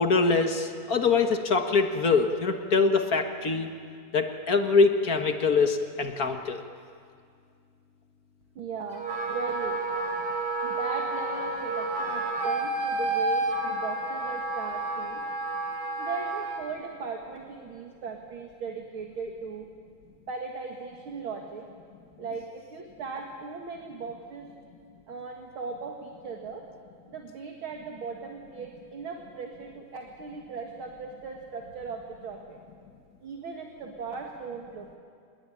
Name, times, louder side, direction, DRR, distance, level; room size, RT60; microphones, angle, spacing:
voice 1, 0.0-3.7 4.1-6.6, left 4 dB, 50° left, 5 dB, 1.1 m, -24 dB
voice 2, 8.6-9.8 10.6-15.2 16.0-19.7 20.3-21.7 22.2-24.5 25.1-26.6 27.1-32.6 33.2-35.0, right 5 dB, 45° right, 2 dB, 2.4 m, -38 dB
Wind instrument woodwind instrument, 8.9-16.6, right 2 dB, 65° right, 4.2 m, -30 dB
26.0 x 21.0 x 9.9 m, 2.2 s
omnidirectional pair, 3.4 m